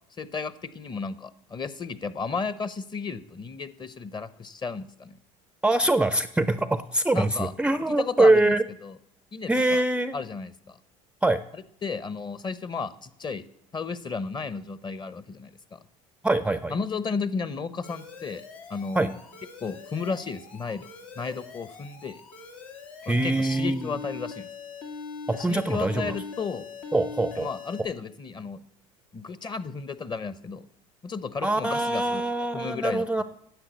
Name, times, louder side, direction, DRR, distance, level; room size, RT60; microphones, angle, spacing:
voice 1, 0.2-5.2 7.1-7.5 7.9-8.6 8.8-8.9 9.3-9.8 10.1-10.8 11.8-13.4 13.7-15.8 16.7-18.4 18.7-19.2 19.6-20.9 21.2-22.2 23.1-24.5 25.3-26.7 27.3-28.6 29.1-30.6 31.0-32.2 32.5-33.2, left 5 dB, 25° left, 16 dB, 0.8 m, -33 dB
voice 2, 5.6-8.6 9.5-10.2 11.2-11.4 16.2-16.7 18.9-19.1 23.0-23.9 25.3-26.2 26.9-27.5 31.4-33.2, right 2 dB, 5° right, 13 dB, 0.5 m, -23 dB
Alarm, 17.8-27.8, left 5 dB, 80° left, 1.9 m, -42 dB
10.5 x 7.4 x 8.2 m, 0.74 s
hypercardioid pair, 85°, 17 cm